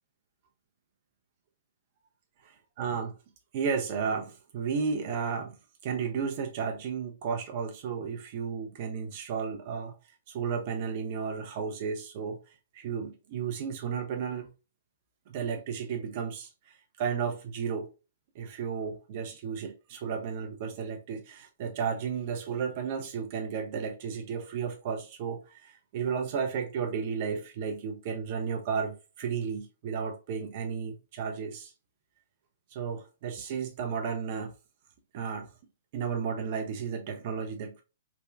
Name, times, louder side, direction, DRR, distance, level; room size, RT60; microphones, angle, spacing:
voice 1, 2.4-3.2 3.5-5.5 5.8-9.9 10.3-12.4 12.7-14.5 15.3-17.9 18.4-31.7 32.7-34.5 35.1-35.5 35.9-37.8, right 6 dB, 45° right, 0.4 m, -33 dB
3.3 x 2.1 x 2.4 m
figure-of-eight pair, 115°, 0 cm